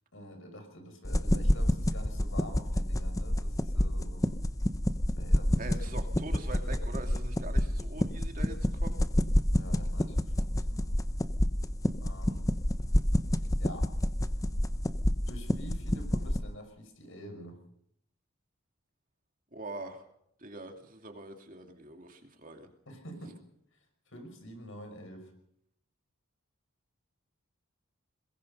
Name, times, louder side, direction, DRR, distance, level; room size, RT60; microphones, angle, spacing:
voice 1, 0.1-4.3 5.2-6.1 9.6-10.9 12.0-12.5 13.6-13.9 15.3-17.6 22.9-23.4 23.7-25.3, equal, 65° left, 6 dB, 5.8 m, -47 dB
sound 1, 1.0-16.4, left 1 dB, 15° left, 0.8 m, -29 dB
voice 2, 5.6-9.0 19.5-20.0 20.4-22.7, right 2 dB, 40° right, 4 dB, 2.6 m, -43 dB
22.0 x 21.5 x 5.5 m, 0.71 s
head